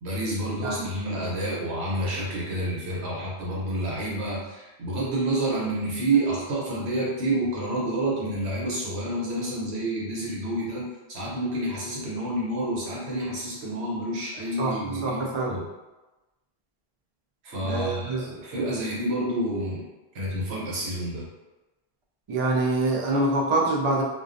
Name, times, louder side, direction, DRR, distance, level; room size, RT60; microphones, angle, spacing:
voice 1, 0.0-15.7 17.4-19.8 20.1-21.3, right 1 dB, 90° right, -5 dB, 1.0 m, -29 dB
voice 2, 15.0-15.5 17.6-18.2 22.3-24.0, right 2 dB, 55° right, -2 dB, 0.3 m, -25 dB
2.4 x 2.1 x 2.5 m, 1.1 s
omnidirectional pair, 1.1 m